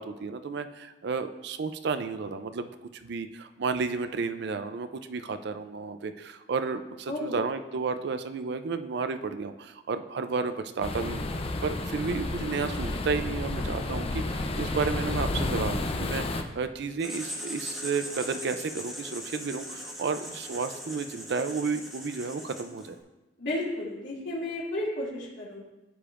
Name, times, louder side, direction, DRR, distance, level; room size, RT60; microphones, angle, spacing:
voice 1, 0.0-11.3 11.6-23.0, right 4 dB, 65° right, 9 dB, 0.4 m, -32 dB
voice 2, 7.1-7.4 23.4-25.6, left 1 dB, 80° left, -7 dB, 2.6 m, -33 dB
sound 1, 10.8-16.4, left 2 dB, 30° left, 0.6 m, -31 dB
Writing, 17.0-23.0, equal, ahead, 1.3 m, -40 dB
14.0 x 5.1 x 2.5 m, 1.1 s
head